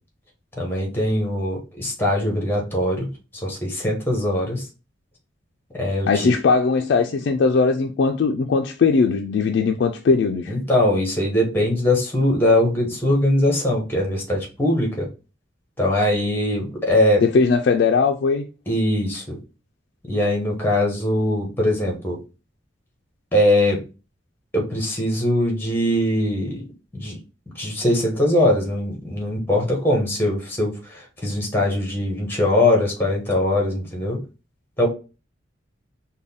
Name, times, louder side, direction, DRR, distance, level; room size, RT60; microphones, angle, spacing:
voice 1, 0.6-3.1 3.4-4.6 5.7-6.2 10.5-15.1 15.8-17.2 18.7-19.4 20.1-22.2 23.3-23.8 24.5-26.6 26.9-27.2 27.6-34.2 34.8-34.9, left 1 dB, 10° left, 1.0 m, -21 dB
voice 2, 6.1-10.5 17.2-18.5, left 4 dB, 60° left, 0.3 m, -19 dB
3.8 x 2.2 x 3.4 m
head